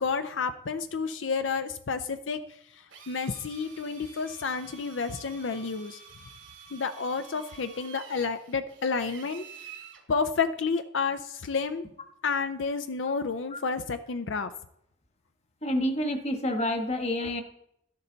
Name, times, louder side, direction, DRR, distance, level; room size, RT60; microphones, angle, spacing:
voice 1, 0.0-2.4 2.7-6.0 6.7-9.7 10.1-11.9 12.2-14.5, left 5 dB, 80° left, 9 dB, 0.6 m, -30 dB
Drill, 2.9-10.0, right 6 dB, 80° right, 2.3 m, -49 dB
voice 2, 15.6-17.4, left 1 dB, 35° left, 6 dB, 1.3 m, -28 dB
12.5 x 11.0 x 4.0 m, 0.75 s
head